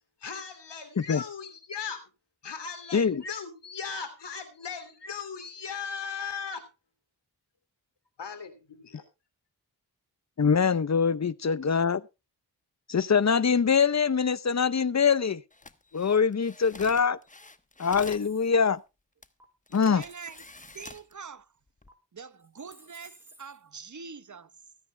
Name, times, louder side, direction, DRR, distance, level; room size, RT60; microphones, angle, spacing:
voice 1, 0.2-2.0 2.4-6.7 8.2-9.0, left 6 dB, 85° left, 3.0 m, -38 dB
voice 2, 2.9-3.2 10.4-12.0 12.9-15.4 15.9-17.2 17.8-18.8 19.7-20.0, left 6 dB, 40° left, 0.8 m, -24 dB
sound 1, 15.5-18.3 19.2-19.3 19.7-21.1 21.7-21.9, left 2 dB, 20° left, 1.1 m, -48 dB
sound 2, 17.8-18.8 19.4-19.5 20.0-21.0 21.9-22.0 22.4-23.6, equal, 5° right, 4.4 m, -55 dB
voice 3, 19.7-20.4 20.7-21.5 22.1-24.5, right 5 dB, 45° right, 1.1 m, -44 dB
24.0 x 9.5 x 2.2 m
cardioid pair, 50°, 41 cm